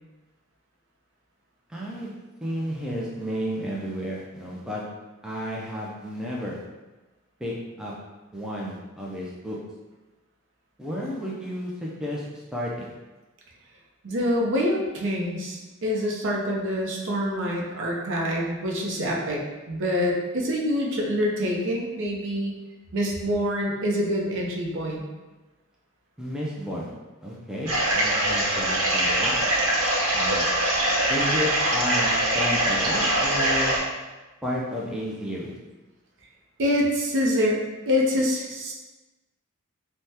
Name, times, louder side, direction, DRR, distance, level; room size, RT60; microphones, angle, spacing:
voice 1, 1.7-2.1 2.4-4.8 5.2-6.6 7.4-7.9 8.3-9.6 10.8-12.9 26.2-26.9 27.2-29.3 30.1-30.5 31.1-33.8 34.4-35.6, equal, 5° right, -5 dB, 0.3 m, -32 dB
voice 2, 14.0-19.4 19.7-22.6 22.9-25.0 36.6-37.6 37.9-38.7, equal, 60° right, -2 dB, 0.5 m, -26 dB
sound 1, 27.7-33.8, right 1 dB, 85° right, 0.8 m, -23 dB
3.3 x 2.1 x 2.7 m, 1.2 s
head